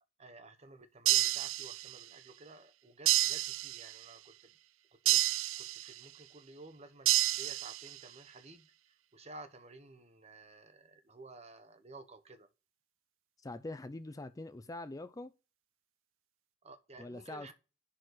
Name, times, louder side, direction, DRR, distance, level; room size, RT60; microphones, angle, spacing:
voice 1, 0.2-4.5 5.0-8.7 9.1-12.5 16.6-17.5, right 2 dB, 30° right, 1.1 m, -53 dB
sound 1, 1.1-2.1 3.1-4.1 5.1-6.1 7.1-8.1, right 15 dB, 80° right, 0.4 m, -30 dB
voice 2, 13.4-15.3 17.0-17.5, left 2 dB, 15° left, 0.4 m, -44 dB
11.0 x 4.3 x 4.7 m
head